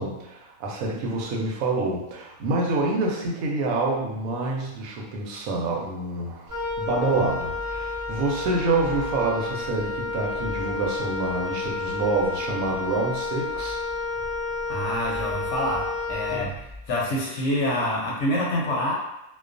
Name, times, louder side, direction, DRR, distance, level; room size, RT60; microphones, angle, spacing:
voice 1, 0.0-13.8 16.3-16.5, right 3 dB, 80° right, -2 dB, 1.0 m, -27 dB
Wind instrument woodwind instrument, 6.5-16.9, left 3 dB, 50° right, 0.3 m, -31 dB
voice 2, 14.7-16.6 16.9-18.9, left 1 dB, 65° left, -3 dB, 0.8 m, -26 dB
2.3 x 2.2 x 2.4 m, 0.90 s
omnidirectional pair, 1.5 m